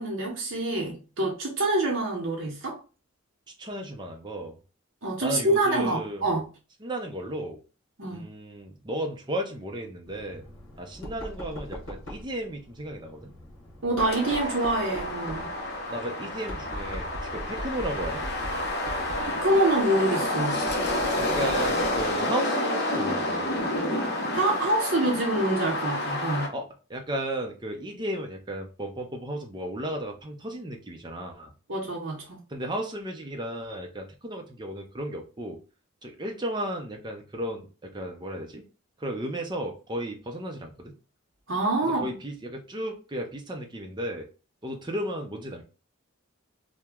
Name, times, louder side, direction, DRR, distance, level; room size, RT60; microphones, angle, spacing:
voice 1, 0.0-2.8 5.0-6.4 8.0-8.3 13.8-15.5 19.2-20.7 24.3-26.5 31.7-32.4 41.5-42.0, right 1 dB, 60° right, -2 dB, 0.8 m, -26 dB
voice 2, 3.6-4.6 5.2-6.2 6.8-7.6 8.1-10.4 10.8-13.3 15.9-18.2 21.2-23.6 26.5-26.6 26.9-31.5 32.5-35.6 36.0-38.6 39.0-40.9 41.8-44.3 44.6-45.6, right 1 dB, 20° right, 2 dB, 0.5 m, -34 dB
Knock, 10.1-22.3, equal, 85° left, 1.1 m, -41 dB
sound 1, 14.0-26.5, left 1 dB, 50° left, 0.7 m, -29 dB
2.9 x 2.1 x 3.5 m, 0.34 s
head